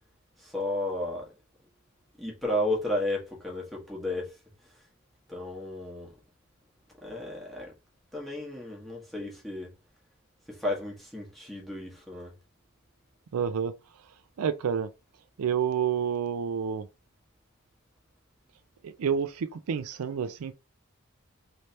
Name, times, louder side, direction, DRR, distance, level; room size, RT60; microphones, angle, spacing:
voice 1, 0.4-1.4 2.2-4.4 4.7-4.8 5.3-6.1 7.0-7.7 8.1-9.7 10.5-12.4, left 1 dB, ahead, 1.2 m, -33 dB
voice 2, 13.3-13.7 14.4-14.9 15.4-16.9 18.8-20.5, right 7 dB, 85° right, 0.4 m, -29 dB
3.2 x 3.2 x 2.8 m
head